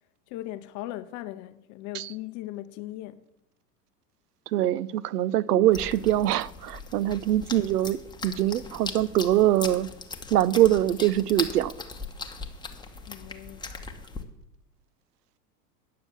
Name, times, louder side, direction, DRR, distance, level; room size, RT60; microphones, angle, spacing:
voice 1, 0.3-3.3 7.0-7.1 13.0-13.7, left 15 dB, 40° left, 0.7 m, -38 dB
voice 2, 4.5-9.9 10.3-11.7, right 13 dB, 75° right, 0.6 m, -23 dB
sound 1, 5.7-14.2, left 4 dB, 10° left, 0.9 m, -39 dB
9.5 x 6.6 x 7.2 m
hypercardioid pair, 90°, 47 cm